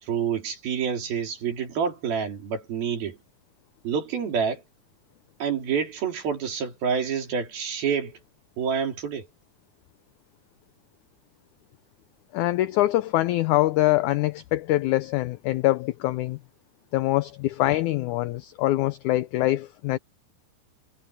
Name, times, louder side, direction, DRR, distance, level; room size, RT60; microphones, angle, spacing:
voice 1, 0.0-3.2 3.8-4.6 5.4-8.2 8.6-9.3, right 7 dB, 90° right, 5.6 m, -28 dB
voice 2, 12.3-16.4 16.9-20.0, left 16 dB, 90° left, 1.7 m, -24 dB
omnidirectional pair, 4.1 m